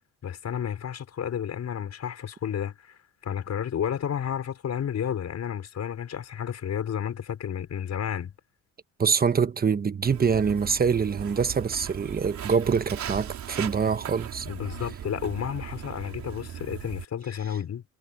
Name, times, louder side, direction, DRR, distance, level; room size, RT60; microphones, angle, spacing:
voice 1, 0.2-8.3 14.5-17.8, left 8 dB, 60° left, 5.6 m, -31 dB
voice 2, 9.0-14.5, right 6 dB, 30° right, 1.1 m, -25 dB
Walk footsteps, 10.0-17.0, right 9 dB, 65° right, 5.0 m, -38 dB
cardioid pair, 90°, 30 cm